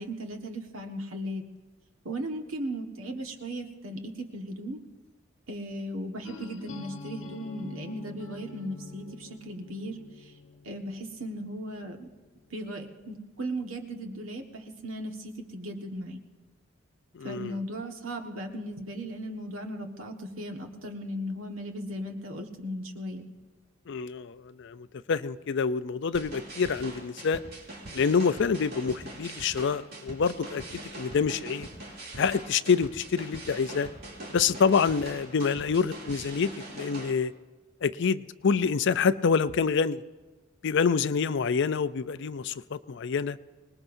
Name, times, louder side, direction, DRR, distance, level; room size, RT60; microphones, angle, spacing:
voice 1, 0.0-1.4 2.0-4.8 5.5-10.3 10.6-12.1 12.5-16.2 17.2-23.3, equal, 90° right, 3 dB, 1.6 m, -37 dB
sound 1, 6.2-12.0, left 3 dB, 85° left, 1.1 m, -46 dB
voice 2, 17.1-17.6 23.9-27.4 27.9-31.7 32.2-33.9 34.3-37.3 37.8-40.0 40.6-43.4, left 5 dB, 60° left, 14 dB, 0.5 m, -27 dB
sound 2, 26.1-37.1, right 1 dB, 50° right, 2.8 m, -42 dB
25.0 x 19.5 x 2.7 m, 1.3 s
head